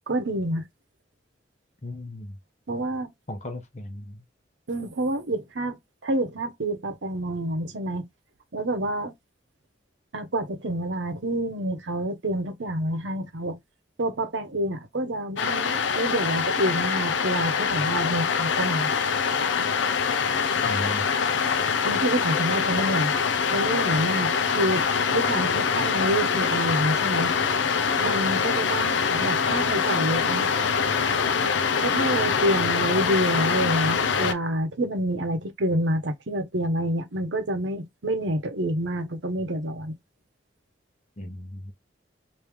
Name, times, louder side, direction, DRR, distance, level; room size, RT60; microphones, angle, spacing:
voice 1, 0.1-0.7 2.7-3.1 4.7-8.1 8.5-9.1 10.1-13.6 14.0-18.9 21.8-23.1 23.5-27.3 28.0-30.5 31.8-39.9, right 1 dB, 80° right, 0.9 m, -28 dB
voice 2, 1.8-2.4 3.3-4.2 20.6-21.1 41.2-41.7, left 1 dB, 40° left, 0.9 m, -36 dB
sound 1, 15.4-34.3, left 6 dB, 80° left, 0.6 m, -24 dB
3.2 x 2.7 x 3.5 m
head